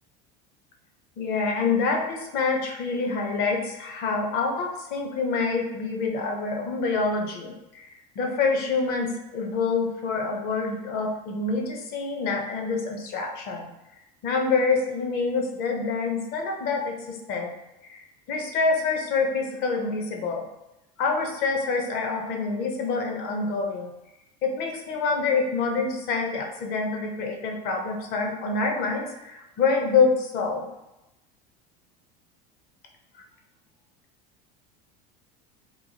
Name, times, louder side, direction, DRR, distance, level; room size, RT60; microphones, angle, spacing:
voice 1, 1.2-13.7 14.2-17.5 17.8-20.5 21.0-23.9 24.4-30.7, left 4 dB, 50° left, 2 dB, 0.7 m, -26 dB
2.9 x 2.2 x 2.8 m, 0.95 s
supercardioid pair, 120°, 20 cm